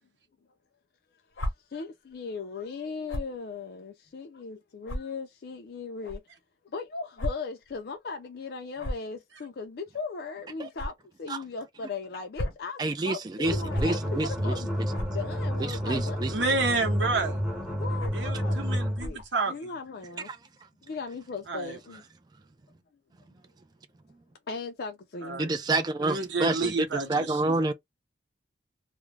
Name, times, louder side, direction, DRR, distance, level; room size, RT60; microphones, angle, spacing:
sound 1, 1.3-1.5 3.1-3.3 4.1-4.2 4.8-5.0 6.0-6.2 7.2-7.3 7.6-7.8 8.8-9.1 10.7-10.9 12.1-12.6 13.7-13.9 14.9-15.1 15.9-16.1 17.0-17.2 18.0-18.3 19.0-19.2, equal, 85° left, 0.7 m, -33 dB
voice 1, 1.4-6.2 6.6-14.9 15.1-16.3 17.8-19.2 19.5-20.3 20.8-22.0 24.5-25.5, left 4 dB, 55° left, 0.4 m, -38 dB
voice 2, 12.8-14.5 15.6-16.3 20.3-20.4 25.4-27.7, right 2 dB, 20° right, 0.3 m, -28 dB
sound 2, 13.4-19.1, equal, 5° right, 0.8 m, -30 dB
voice 3, 16.3-17.4 18.1-19.5 21.5-21.8 25.2-25.5 26.0-27.6, right 3 dB, 75° right, 0.9 m, -30 dB
2.4 x 2.0 x 3.1 m
head